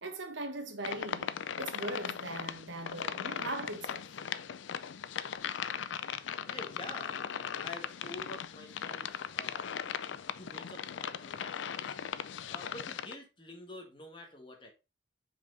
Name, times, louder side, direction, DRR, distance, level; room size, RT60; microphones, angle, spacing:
voice 1, 0.0-4.1, right 2 dB, 80° right, 1.4 m, -40 dB
sound 1, 0.8-13.2, left 8 dB, 85° left, 0.4 m, -38 dB
voice 2, 6.4-7.2 7.6-9.7 10.4-12.1 12.5-14.7, left 1 dB, 25° left, 1.6 m, -48 dB
5.8 x 4.8 x 4.0 m
head